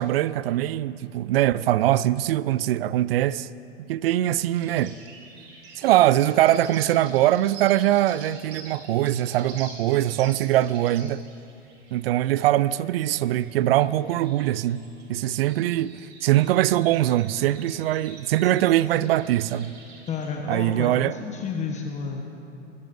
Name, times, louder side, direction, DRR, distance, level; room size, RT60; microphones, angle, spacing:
voice 1, 0.0-3.5 3.9-4.9 5.8-11.2 11.9-14.8 15.1-19.7 20.5-21.2, right 13 dB, 50° right, 0.5 m, -22 dB
sound 1, 4.5-20.3, right 3 dB, 30° right, 3.1 m, -47 dB
voice 2, 20.1-22.3, left 5 dB, 20° left, 1.1 m, -31 dB
22.0 x 15.0 x 2.6 m
hypercardioid pair, 115°, 38 cm